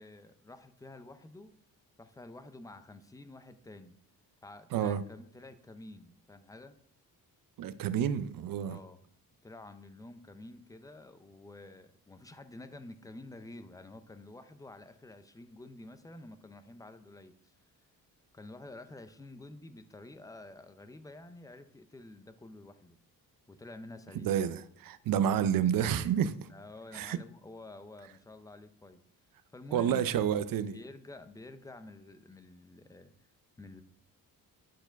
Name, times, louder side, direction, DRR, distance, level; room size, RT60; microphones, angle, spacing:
voice 1, 0.0-1.5 2.0-3.9 4.4-6.8 8.6-9.0 9.4-17.5 18.3-23.0 23.5-24.3 26.5-29.0 29.5-30.1 30.7-33.1 33.6-33.8, left 2 dB, 10° left, 0.4 m, -49 dB
voice 2, 4.7-5.0 7.6-8.8 24.1-26.5 26.9-27.2 29.7-30.8, right 9 dB, 70° right, 0.6 m, -29 dB
10.0 x 4.6 x 5.8 m
wide cardioid pair, 170°, 36 cm